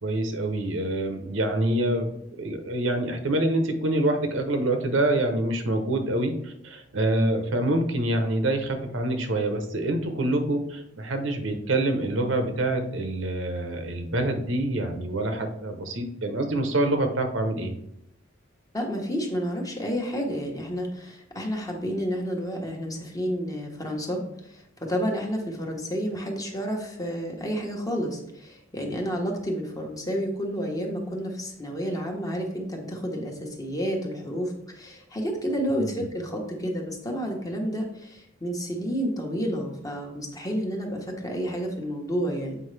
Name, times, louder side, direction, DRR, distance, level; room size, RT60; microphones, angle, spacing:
voice 1, 0.0-2.1 2.4-17.7 35.8-36.1, right 1 dB, 75° right, 6 dB, 0.9 m, -26 dB
voice 2, 18.7-42.6, equal, 20° left, 1 dB, 1.1 m, -30 dB
7.8 x 5.0 x 3.3 m, 0.79 s
head